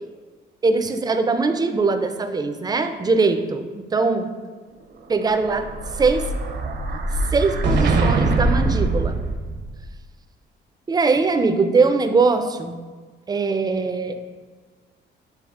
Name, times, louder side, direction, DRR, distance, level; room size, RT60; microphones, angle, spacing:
voice 1, 0.6-4.3 5.1-5.7 6.0-6.2 7.3-9.2 10.9-12.8 13.3-14.1, right 4 dB, 20° right, 8 dB, 0.4 m, -21 dB
Explosion, 5.2-9.8, right 2 dB, 60° right, 0.6 m, -22 dB
7.8 x 2.8 x 2.4 m, 1.4 s
cardioid pair, 90°, 20 cm